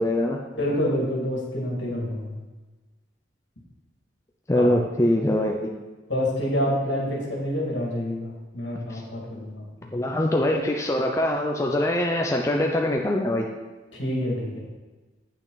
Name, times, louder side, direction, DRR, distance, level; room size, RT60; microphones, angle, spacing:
voice 1, 0.0-0.4 4.5-5.6 8.9-9.0 9.9-13.5, left 1 dB, 15° left, 0 dB, 0.5 m, -23 dB
voice 2, 0.5-2.4 4.5-4.7 6.1-9.9 13.9-14.6, equal, 65° left, -3 dB, 2.2 m, -27 dB
8.6 x 5.8 x 4.0 m, 1.2 s
head